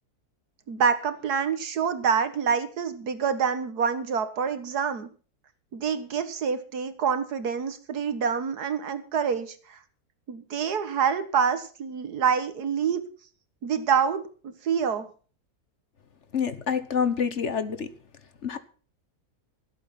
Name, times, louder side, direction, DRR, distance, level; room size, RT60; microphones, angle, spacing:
voice 1, 0.7-5.1 5.7-9.8 10.3-13.0 13.6-15.1, right 7 dB, 85° right, 11 dB, 1.9 m, -26 dB
voice 2, 16.3-17.9 18.4-18.6, left 7 dB, 50° left, 12 dB, 1.4 m, -27 dB
16.5 x 8.4 x 5.8 m, 0.40 s
omnidirectional pair, 1.6 m